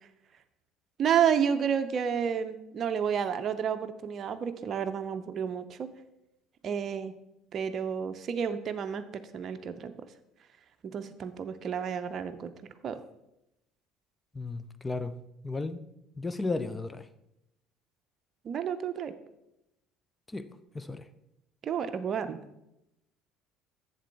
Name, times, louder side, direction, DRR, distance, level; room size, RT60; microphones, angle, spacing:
voice 1, 1.0-5.9 6.6-7.1 7.5-9.9 10.9-12.5 12.8-13.0 18.4-19.1 21.6-22.4, right 8 dB, 45° right, 0.6 m, -30 dB
voice 2, 14.3-15.1 15.4-15.8 16.2-17.0 20.3-20.5 20.7-21.0, left 3 dB, 20° left, 0.6 m, -34 dB
8.0 x 7.4 x 3.5 m
hypercardioid pair, 60°, 0 cm